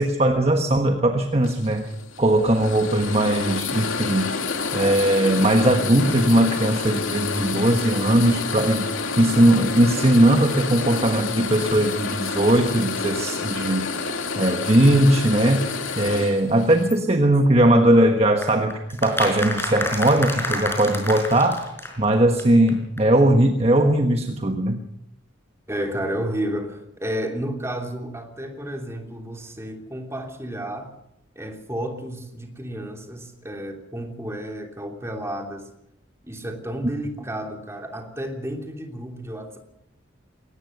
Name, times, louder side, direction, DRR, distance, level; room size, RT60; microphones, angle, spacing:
voice 1, 0.0-1.9 2.2-4.3 4.7-8.9 9.2-14.0 14.4-15.7 16.0-21.6 22.0-24.8, right 1 dB, 30° right, 4 dB, 1.3 m, -19 dB
sound 1, 1.4-17.0, left 4 dB, 90° left, 2.8 m, -29 dB
sound 2, 18.4-22.1 22.4-22.5 22.7-22.8 23.0-23.1, left 1 dB, 10° left, 4.7 m, -29 dB
voice 2, 25.7-30.9 31.3-35.7 36.2-39.6, right 1 dB, 15° right, 3 dB, 3.1 m, -31 dB
21.5 x 19.0 x 6.7 m, 0.79 s
head